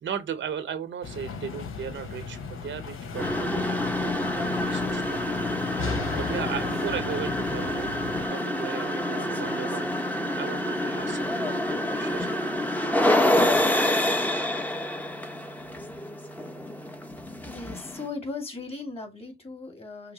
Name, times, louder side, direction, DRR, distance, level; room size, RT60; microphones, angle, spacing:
voice 1, 0.0-5.9 6.1-7.9 8.3-12.4, right 8 dB, 65° right, 0.9 m, -37 dB
sound 1, 1.0-8.3, left 5 dB, 80° left, 1.1 m, -36 dB
sound 2, 3.1-18.1, left 1 dB, 10° left, 0.9 m, -27 dB
voice 2, 17.4-20.1, left 3 dB, 30° left, 2.1 m, -37 dB
5.8 x 2.1 x 4.0 m
cardioid pair, 85°, 21 cm